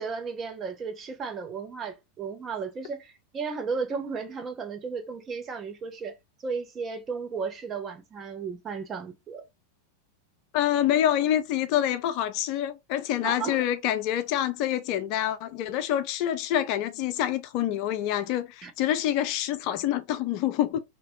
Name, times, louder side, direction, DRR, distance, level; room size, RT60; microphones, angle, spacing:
voice 1, 0.0-9.4 13.2-13.6 18.6-18.7, right 5 dB, 25° right, 0.7 m, -34 dB
voice 2, 10.5-20.8, left 11 dB, 45° left, 0.3 m, -26 dB
3.0 x 2.8 x 2.7 m
figure-of-eight pair, 90°, 0 cm